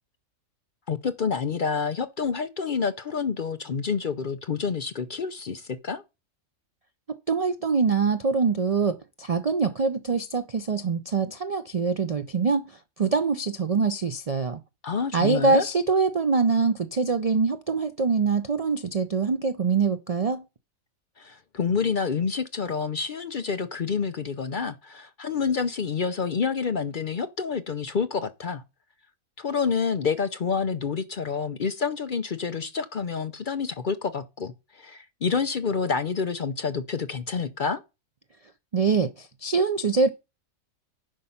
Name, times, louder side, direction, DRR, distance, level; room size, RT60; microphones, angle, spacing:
voice 1, 0.9-6.0 14.8-15.6 21.2-28.6 29.4-37.8, left 5 dB, 50° left, 0.6 m, -28 dB
voice 2, 7.1-14.6 15.1-20.4 38.7-40.1, right 4 dB, 75° right, 0.3 m, -24 dB
10.0 x 5.3 x 5.7 m
omnidirectional pair, 1.5 m